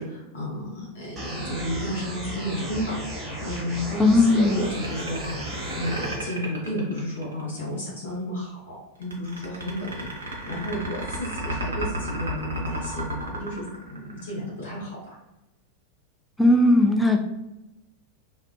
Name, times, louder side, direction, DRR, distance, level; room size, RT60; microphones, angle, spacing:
voice 1, 0.0-5.4 5.7-15.2, equal, 60° left, -6 dB, 0.9 m, -32 dB
sound 1, 1.2-6.2, equal, 25° right, 0.7 m, -34 dB
voice 2, 4.0-4.6 16.4-17.2, left 2 dB, 5° left, 2 dB, 0.3 m, -17 dB
sound 2, 4.4-7.6 9.0-14.5, right 1 dB, 70° right, 0.6 m, -33 dB
2.4 x 2.2 x 2.5 m, 0.96 s
figure-of-eight pair, 90°, 0 cm